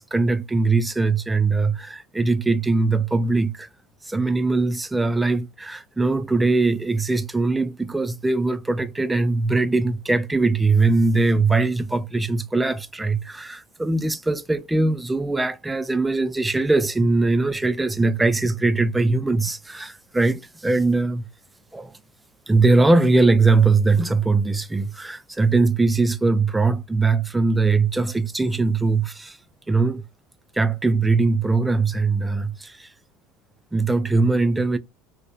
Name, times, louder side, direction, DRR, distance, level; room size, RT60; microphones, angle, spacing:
voice 1, 0.0-3.7 4.0-21.3 21.7-22.0 22.5-29.4 29.7-30.0 30.5-32.9 33.7-34.8, right 3 dB, 10° right, 0.3 m, -21 dB
2.7 x 2.0 x 2.2 m
hypercardioid pair, 75°, 0 cm